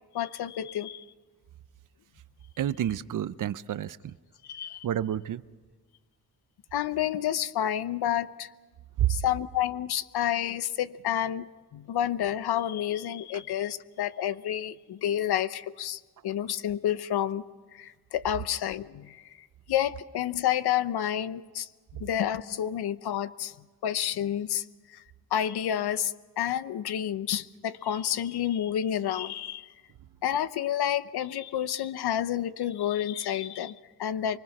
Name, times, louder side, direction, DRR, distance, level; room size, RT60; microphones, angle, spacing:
voice 1, 0.1-1.0 4.4-4.8 6.7-8.5 9.1-17.4 17.7-19.3 19.7-23.5 23.8-25.0 25.3-29.7 30.2-34.4, left 10 dB, 80° left, 14 dB, 0.9 m, -30 dB
voice 2, 2.6-4.1 4.8-5.4 9.0-9.1, right 11 dB, 55° right, 16 dB, 0.6 m, -29 dB
24.5 x 24.0 x 6.0 m, 1.4 s
wide cardioid pair, 160°, 38 cm